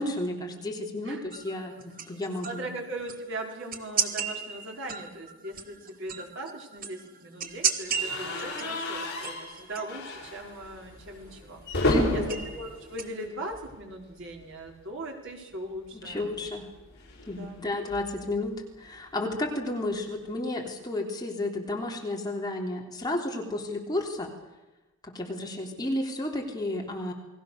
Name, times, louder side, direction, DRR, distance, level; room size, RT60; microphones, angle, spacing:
voice 1, 0.0-2.7 11.8-12.3 15.9-16.6 17.3-24.3 25.0-27.1, left 1 dB, 20° left, 0 dB, 3.4 m, -32 dB
sound 1, 1.3-13.2, right 6 dB, 45° right, 1.9 m, -36 dB
voice 2, 2.4-16.4 17.3-17.7, right 1 dB, 60° right, 1 dB, 5.1 m, -39 dB
sound 2, 7.9-13.9 14.2-14.4 14.7-14.8 16.0-18.4, left 1 dB, 55° left, 6.6 m, -33 dB
29.5 x 21.0 x 6.7 m, 1.1 s
head